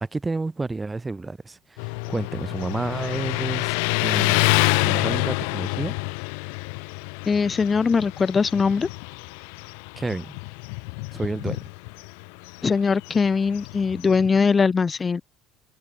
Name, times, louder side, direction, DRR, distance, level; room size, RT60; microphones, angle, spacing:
voice 1, 0.0-6.0 10.0-10.3 11.1-11.7, right 3 dB, 15° right, 2.6 m, -30 dB
Motorcycle, 1.8-14.4, left 38 dB, 60° left, 1.3 m, -27 dB
voice 2, 7.2-8.9 12.6-15.2, left 5 dB, 25° left, 1.9 m, -21 dB
figure-of-eight pair, 60°, 0 cm